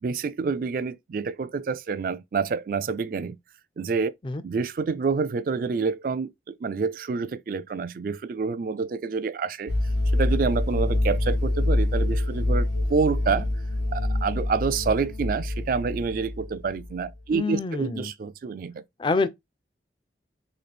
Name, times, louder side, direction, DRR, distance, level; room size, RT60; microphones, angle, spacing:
voice 1, 0.0-3.4 3.8-4.1 4.4-9.7 10.1-13.5 13.9-18.8, right 5 dB, 50° right, 0.3 m, -28 dB
sound 1, 9.7-17.1, left 1 dB, 75° left, 0.9 m, -26 dB
voice 2, 17.3-18.1 19.0-19.3, left 3 dB, 25° left, 0.4 m, -26 dB
3.9 x 2.4 x 3.3 m
head